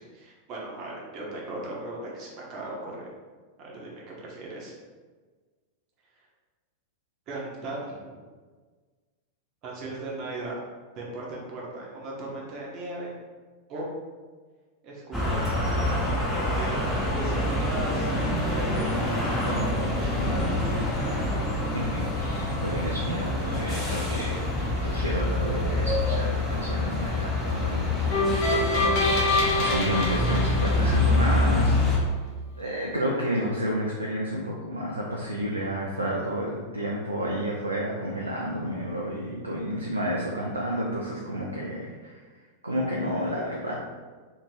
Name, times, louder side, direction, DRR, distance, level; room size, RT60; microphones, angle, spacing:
voice 1, 0.0-3.1 3.6-4.7 7.3-8.2 9.6-10.6 11.0-13.1 13.7-13.9 14.8-16.9 17.1-19.2 19.4-20.2, right 2 dB, 35° right, -3 dB, 0.8 m, -37 dB
sound 1, 15.1-32.0, left 1 dB, ahead, 0.9 m, -26 dB
voice 2, 21.7-29.0 29.5-31.7 32.6-43.8, equal, 85° right, -3 dB, 0.4 m, -31 dB
sound 2, 28.1-31.3, left 2 dB, 45° left, 0.8 m, -25 dB
2.6 x 2.5 x 3.2 m, 1.4 s
figure-of-eight pair, 90°, 0 cm